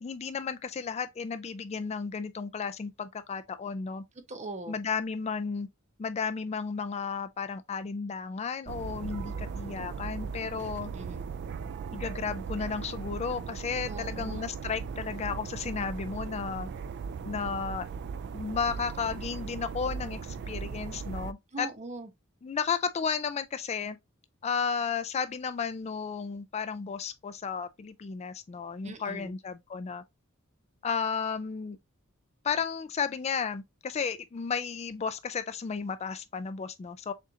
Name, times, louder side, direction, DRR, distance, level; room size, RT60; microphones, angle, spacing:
voice 1, 0.0-4.0 4.7-5.7 6.0-10.9 11.9-16.7 17.2-17.9 18.3-21.7 22.4-24.0 24.4-30.0 30.8-31.8 32.4-37.1, left 6 dB, 30° left, 0.3 m, -33 dB
voice 2, 4.3-4.8 10.9-11.3 13.9-14.4 21.5-22.1 28.8-29.3, right 2 dB, 35° right, 0.8 m, -40 dB
sound 1, 8.7-21.3, right 5 dB, 55° right, 0.3 m, -38 dB
6.7 x 2.5 x 2.7 m
head